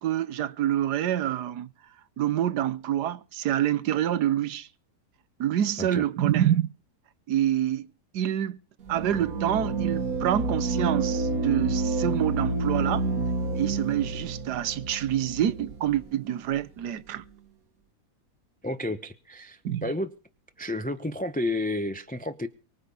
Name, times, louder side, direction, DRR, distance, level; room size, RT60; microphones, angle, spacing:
voice 1, 0.0-1.7 2.2-4.7 5.4-6.7 7.3-7.9 8.1-8.6 8.9-13.1 13.5-17.2 19.6-19.8, right 11 dB, 80° right, 1.5 m, -26 dB
sound 1, 8.9-16.0, right 3 dB, 60° right, 1.7 m, -29 dB
voice 2, 18.6-20.1 20.6-22.5, left 1 dB, 10° left, 0.6 m, -31 dB
23.5 x 8.5 x 5.5 m
omnidirectional pair, 1.7 m